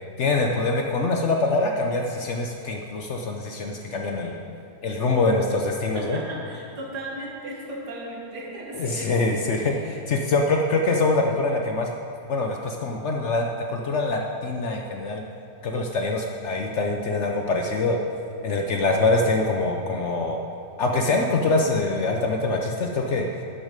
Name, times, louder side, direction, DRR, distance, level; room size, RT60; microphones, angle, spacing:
voice 1, 0.2-4.4 4.8-6.2 8.8-11.9 12.3-15.2 15.6-18.0 18.4-20.4 20.8-23.3, left 3 dB, 60° left, 2 dB, 0.8 m, -24 dB
voice 2, 5.9-9.2 9.5-9.9, right 1 dB, 85° right, -3 dB, 2.3 m, -36 dB
11.0 x 6.4 x 5.1 m, 2.6 s
omnidirectional pair, 1.7 m